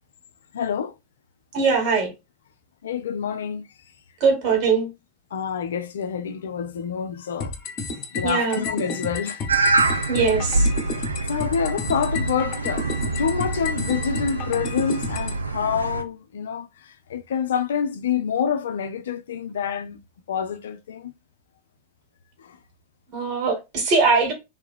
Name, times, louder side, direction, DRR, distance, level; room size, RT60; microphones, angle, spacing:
voice 1, 0.5-0.9 2.8-3.6 5.3-7.5 8.1-9.4 9.9-10.0 11.3-12.8 13.2-16.7 17.1-20.0 20.3-21.1 22.4-22.6, left 7 dB, 65° left, 0.5 m, -27 dB
voice 2, 1.5-2.1 4.2-4.9 8.2-8.6 10.1-10.7 23.1-24.3, right 4 dB, 45° right, 1.8 m, -21 dB
sound 1, 7.4-15.4, left 4 dB, 35° left, 1.0 m, -31 dB
sound 2, 9.5-16.0, right 3 dB, 80° right, 0.5 m, -25 dB
3.4 x 2.8 x 3.3 m
figure-of-eight pair, 90°, 0 cm